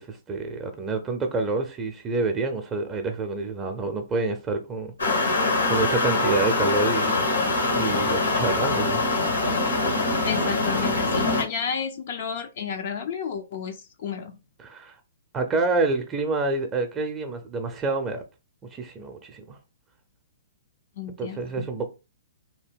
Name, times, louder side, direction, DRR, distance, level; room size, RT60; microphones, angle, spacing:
voice 1, 0.0-7.3 7.8-9.0 14.6-15.0 15.3-18.2 18.7-19.6 21.2-21.9, right 3 dB, 20° right, 0.5 m, -28 dB
sound 1, 5.0-11.4, left 3 dB, 85° left, 1.2 m, -23 dB
voice 2, 10.2-14.4 21.0-21.7, left 6 dB, 55° left, 0.4 m, -32 dB
2.8 x 2.1 x 3.5 m
hypercardioid pair, 125°, 0 cm